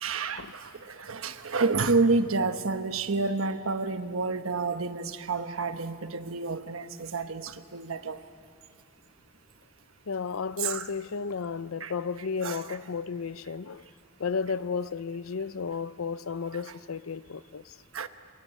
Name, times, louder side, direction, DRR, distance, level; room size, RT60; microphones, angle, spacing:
voice 1, 0.0-8.2 10.6-10.9 11.8-11.9 12.4-12.8 17.9-18.1, right 3 dB, 85° right, 1.2 m, -29 dB
voice 2, 10.1-13.8 14.2-17.8, left 5 dB, 90° left, 0.6 m, -33 dB
27.5 x 21.5 x 8.4 m
head